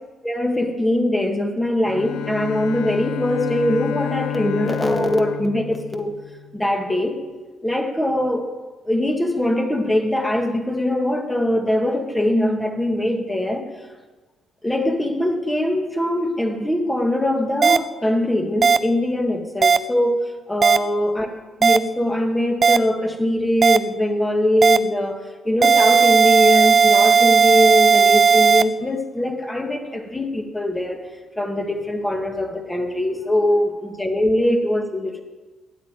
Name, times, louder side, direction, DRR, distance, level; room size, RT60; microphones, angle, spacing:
voice 1, 0.2-6.2 6.5-7.2 7.6-8.5 8.9-13.7 14.6-21.3 21.6-31.0 31.4-35.2, left 1 dB, 10° left, 4 dB, 1.7 m, -22 dB
Bowed string instrument, 1.8-6.7, left 13 dB, 85° left, 0.8 m, -30 dB
sound 1, 17.6-17.8 18.6-18.8 19.6-19.8 20.6-20.8 21.6-21.8 22.6-22.8 23.6-23.8 24.6-24.8 25.6-28.6, right 5 dB, 35° right, 0.5 m, -14 dB
11.5 x 8.2 x 9.0 m, 1.3 s
cardioid pair, 115°, 0 cm